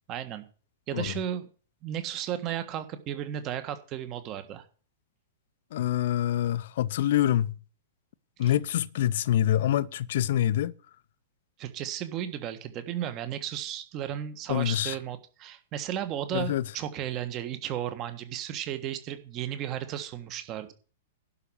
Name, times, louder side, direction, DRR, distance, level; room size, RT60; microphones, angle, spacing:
voice 1, 0.1-0.4 0.9-1.5 1.8-4.6 8.4-8.5 11.6-20.7, right 10 dB, 35° right, 1.5 m, -34 dB
voice 2, 5.7-7.6 8.4-10.7 14.5-14.9 16.3-16.6, left 12 dB, 55° left, 0.5 m, -26 dB
11.5 x 5.7 x 8.0 m
figure-of-eight pair, 105°, 0 cm